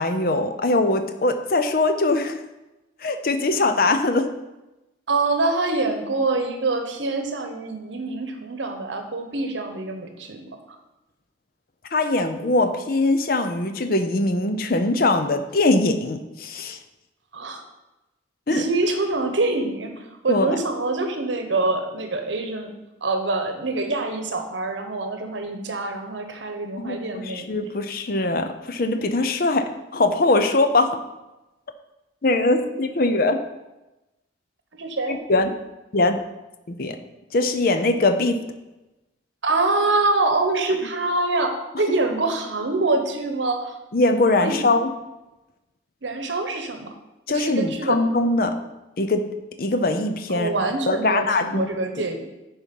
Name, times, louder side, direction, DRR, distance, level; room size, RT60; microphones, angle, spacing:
voice 1, 0.0-2.4 3.0-4.3 11.9-16.8 18.5-18.7 20.3-20.6 26.8-31.0 32.2-33.4 35.1-35.5 35.9-36.2 36.7-37.0 37.3-38.5 43.9-44.9 47.3-48.6 49.0-50.5 50.9-51.7, left 2 dB, 50° left, 8 dB, 0.6 m, -22 dB
voice 2, 5.1-10.8 17.3-17.6 18.5-22.7 23.0-27.5 34.7-35.2 39.4-43.7 44.4-44.7 46.0-46.9 47.3-48.0 50.3-52.2, right 2 dB, 80° right, 5 dB, 1.1 m, -25 dB
10.0 x 4.4 x 5.4 m, 1.0 s
head